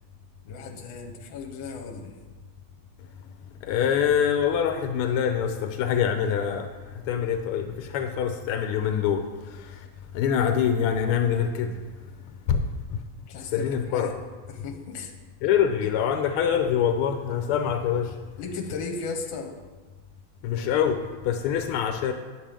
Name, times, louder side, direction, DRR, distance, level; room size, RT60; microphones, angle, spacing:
voice 1, 0.4-2.1 13.2-14.2 14.5-15.1 15.8-15.9 18.4-19.6, left 4 dB, 70° left, 3 dB, 1.6 m, -36 dB
voice 2, 3.6-9.9 10.1-11.8 12.5-12.6 12.9-13.0 13.4-14.1 15.4-18.2 20.4-22.1, left 8 dB, 85° left, 7 dB, 1.5 m, -25 dB
8.9 x 7.2 x 3.4 m, 1.3 s
omnidirectional pair, 2.3 m